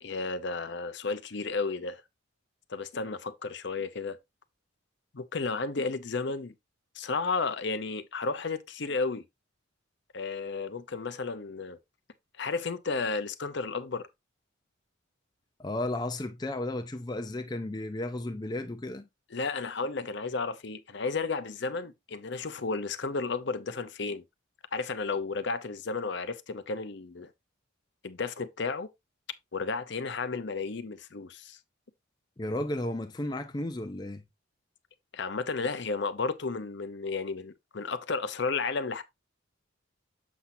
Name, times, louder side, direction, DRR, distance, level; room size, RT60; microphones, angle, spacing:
voice 1, 0.0-2.0 2.7-4.2 5.1-6.5 7.0-9.2 10.1-11.8 12.4-14.1 19.3-24.2 24.7-27.3 28.0-28.9 29.5-31.6 35.1-39.0, left 4 dB, 55° left, 0.7 m, -33 dB
voice 2, 15.6-19.1 32.4-34.2, left 1 dB, 20° left, 0.5 m, -34 dB
7.3 x 5.8 x 2.7 m
head